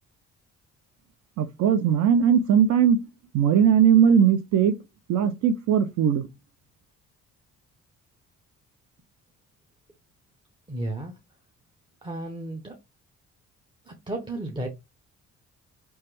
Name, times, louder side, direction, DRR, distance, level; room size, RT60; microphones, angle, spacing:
voice 1, 1.4-3.0 3.3-4.7 5.1-6.3, right 8 dB, 70° right, 0.4 m, -19 dB
voice 2, 10.7-11.2 12.0-12.8 13.9-14.7, right 1 dB, 15° right, 0.6 m, -33 dB
3.1 x 2.2 x 3.0 m
cardioid pair, 90°, 30 cm